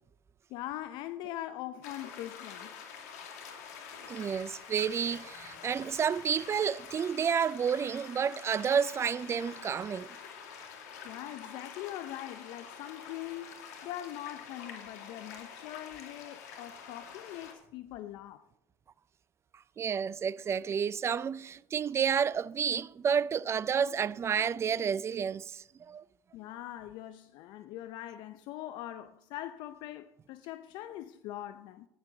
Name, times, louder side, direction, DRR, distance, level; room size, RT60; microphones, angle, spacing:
voice 1, 0.5-2.8 11.0-18.4 26.3-31.9, left 13 dB, 65° left, 0.7 m, -42 dB
sound 1, 1.8-17.5, left 6 dB, 80° left, 2.4 m, -47 dB
voice 2, 4.1-10.1 19.8-26.0, right 7 dB, 30° right, 0.5 m, -30 dB
15.0 x 10.5 x 4.0 m
hypercardioid pair, 75°, 8 cm